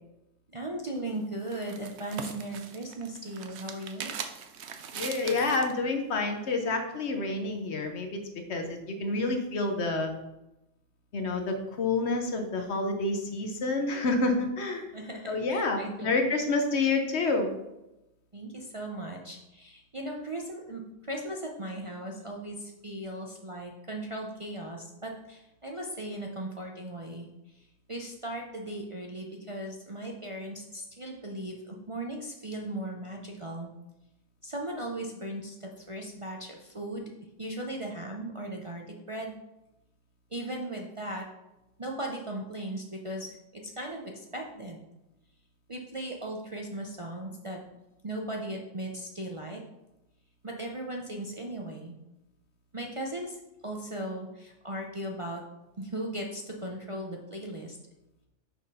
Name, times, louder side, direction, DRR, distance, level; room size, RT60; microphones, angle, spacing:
voice 1, 0.5-4.1 14.9-16.1 18.3-20.8 21.1-27.3 27.9-33.7 34.4-37.1 37.4-39.3 40.3-41.2 41.8-44.8 45.7-47.6 48.0-49.6 50.4-51.9 52.7-55.4 55.8-57.8, right 1 dB, 35° right, -1 dB, 0.6 m, -37 dB
sound 1, 1.0-5.8, right 7 dB, 65° right, 0.9 m, -41 dB
voice 2, 4.9-8.2 8.5-10.1 11.1-14.9 15.3-17.5, left 3 dB, 60° left, 4 dB, 1.1 m, -28 dB
5.9 x 4.3 x 5.4 m, 0.93 s
omnidirectional pair, 1.3 m